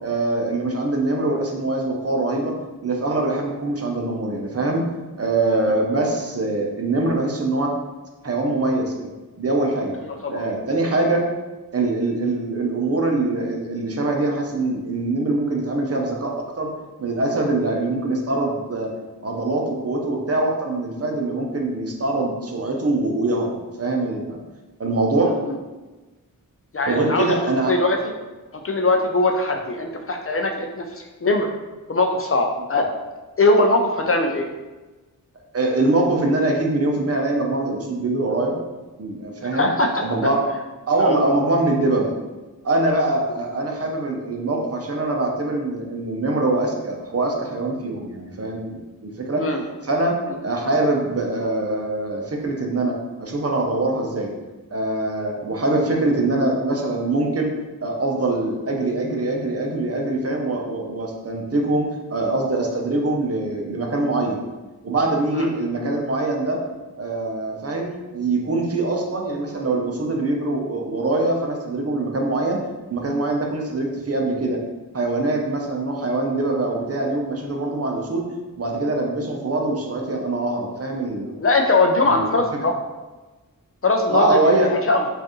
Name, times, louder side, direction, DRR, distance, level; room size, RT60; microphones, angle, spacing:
voice 1, 0.0-2.6 2.8-4.8 5.2-7.7 8.2-9.1 9.4-9.9 10.3-11.3 11.7-16.7 17.0-18.9 19.2-24.4 24.8-25.3 26.8-27.7 35.5-38.6 39.0-39.7 40.0-40.5 40.9-42.1 42.6-49.5 49.8-50.2 50.4-54.3 54.7-57.5 57.8-64.4 64.8-66.6 67.0-72.6 72.9-74.6 74.9-78.2 78.6-81.3 82.0-82.2 84.1-84.7, right 2 dB, 45° right, 1 dB, 0.6 m, -23 dB
voice 2, 25.2-25.5 26.7-27.3 27.6-28.0 28.6-30.9 31.2-31.5 31.9-32.9 33.4-34.5 39.5-40.0 41.0-41.2 49.4-49.6 65.3-65.5 81.4-82.7 83.8-85.1, left 2 dB, 40° left, 3 dB, 0.4 m, -20 dB
4.4 x 2.5 x 3.0 m, 1.2 s
wide cardioid pair, 100°, 35 cm